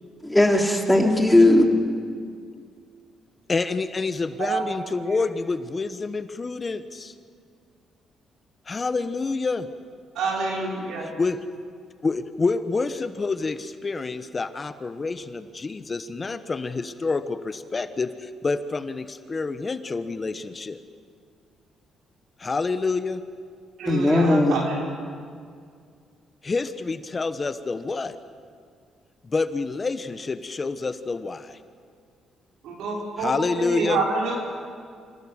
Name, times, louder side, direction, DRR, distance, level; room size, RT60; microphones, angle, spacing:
voice 1, 0.2-1.6 23.9-24.7, left 1 dB, 5° left, 2 dB, 2.8 m, -18 dB
voice 2, 3.5-7.1 8.7-9.7 11.0-11.4 12.0-20.8 22.4-23.2 26.4-28.2 29.2-31.6 33.2-34.0, left 4 dB, 30° left, 11 dB, 1.0 m, -28 dB
voice 3, 10.1-11.1 23.8-24.9 32.6-34.4, right 3 dB, 80° right, -1 dB, 5.2 m, -27 dB
26.0 x 16.5 x 8.0 m, 2.2 s
cardioid pair, 90°, 0 cm